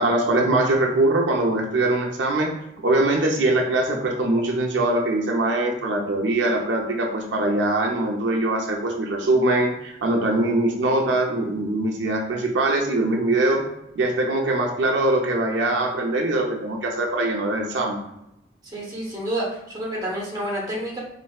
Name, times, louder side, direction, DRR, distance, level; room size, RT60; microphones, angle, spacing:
voice 1, 0.0-13.6 14.0-18.0, right 2 dB, 80° right, 1 dB, 0.5 m, -22 dB
voice 2, 18.7-21.0, right 1 dB, 20° right, -4 dB, 0.8 m, -29 dB
4.2 x 2.5 x 2.3 m, 0.84 s
head